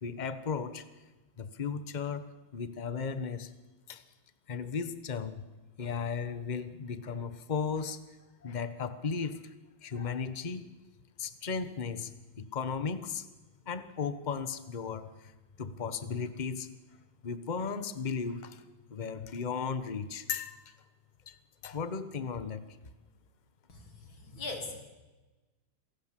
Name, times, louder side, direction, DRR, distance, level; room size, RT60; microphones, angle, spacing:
voice 1, 0.0-0.8 1.4-2.2 2.5-3.5 3.9-4.0 4.5-5.4 5.8-8.0 8.4-9.4 9.8-10.6 11.2-13.3 13.7-15.3 15.6-16.7 17.2-18.6 18.9-20.7 21.3-21.4 21.6-22.6, left 5 dB, 25° left, 12 dB, 1.0 m, -35 dB
voice 2, 23.7-24.8, left 3 dB, 70° left, 4 dB, 4.0 m, -41 dB
27.0 x 17.5 x 7.6 m, 1.2 s
omnidirectional pair, 2.3 m